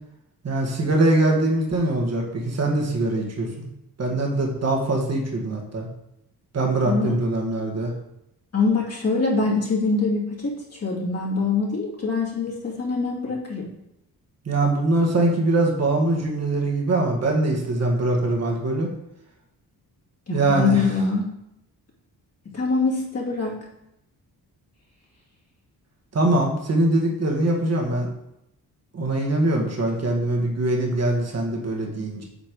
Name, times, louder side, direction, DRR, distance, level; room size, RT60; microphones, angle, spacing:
voice 1, 0.4-3.7 4.0-5.9 6.5-7.9 14.4-18.9 20.3-20.9 26.1-28.1 28.9-32.2, right 2 dB, 40° right, 0 dB, 1.6 m, -22 dB
voice 2, 6.9-7.2 8.5-13.7 20.3-21.3 22.5-23.6, left 4 dB, 40° left, -4 dB, 2.5 m, -24 dB
8.3 x 4.4 x 4.7 m, 0.82 s
cardioid pair, 120°, 38 cm